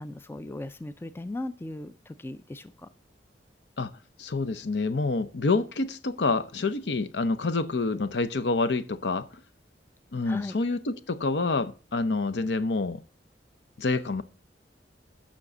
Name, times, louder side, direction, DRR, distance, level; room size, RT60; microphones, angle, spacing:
voice 1, 0.0-2.9 10.2-10.6, left 2 dB, 15° left, 0.3 m, -37 dB
voice 2, 4.2-9.3 10.1-13.0 13.8-14.2, left 3 dB, 70° left, 0.7 m, -27 dB
7.5 x 5.9 x 6.5 m
head